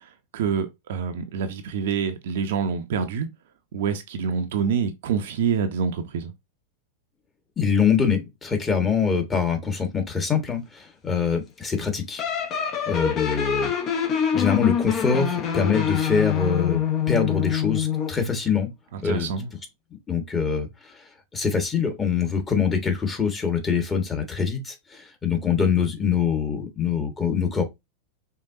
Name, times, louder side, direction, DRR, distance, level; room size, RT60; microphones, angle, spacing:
voice 1, 0.0-3.3 3.7-6.3 18.9-19.5, right 6 dB, 55° right, 0.7 m, -27 dB
voice 2, 7.6-12.2 12.9-14.0 14.3-16.8 17.1-18.7 19.0-19.3 20.1-21.0 21.3-27.6, left 6 dB, 20° left, 1.5 m, -24 dB
sound 1, 12.2-18.2, left 8 dB, 35° left, 1.0 m, -25 dB
4.9 x 3.6 x 2.6 m
figure-of-eight pair, 90°, 0 cm